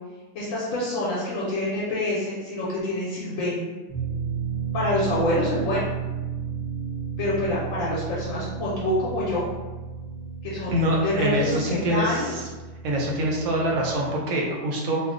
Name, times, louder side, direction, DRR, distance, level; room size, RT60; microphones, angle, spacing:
voice 1, 0.3-3.7 4.7-5.9 7.2-9.5 10.4-12.3, left 1 dB, 70° left, -6 dB, 1.0 m, -26 dB
sound 1, 3.9-13.9, right 6 dB, 25° left, 0.6 m, -33 dB
voice 2, 10.7-12.5 12.8-15.0, right 1 dB, 80° right, -1 dB, 1.1 m, -25 dB
2.7 x 2.0 x 3.6 m, 1.2 s
omnidirectional pair, 1.4 m